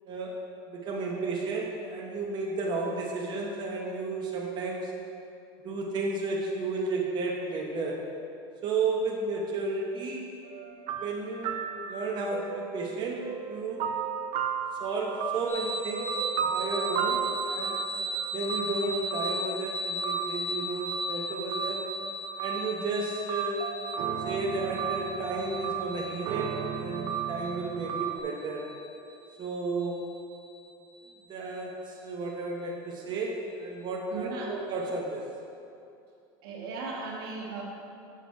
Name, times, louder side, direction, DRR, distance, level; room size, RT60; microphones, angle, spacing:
voice 1, 0.7-4.9 5.6-8.1 8.6-10.3 11.0-13.8 14.8-17.8 18.3-21.8 22.4-23.7 24.2-28.7 29.4-30.1 31.3-35.2, right 3 dB, 35° right, -1 dB, 1.0 m, -33 dB
sound 1, 10.4-28.2, right 8 dB, 55° right, 0.6 m, -35 dB
sound 2, 15.5-31.0, equal, 15° left, 1.8 m, -37 dB
voice 2, 34.1-34.5 36.4-37.6, right 4 dB, 85° right, -1 dB, 1.5 m, -36 dB
7.4 x 5.9 x 4.7 m, 2.6 s
supercardioid pair, 135°, 12 cm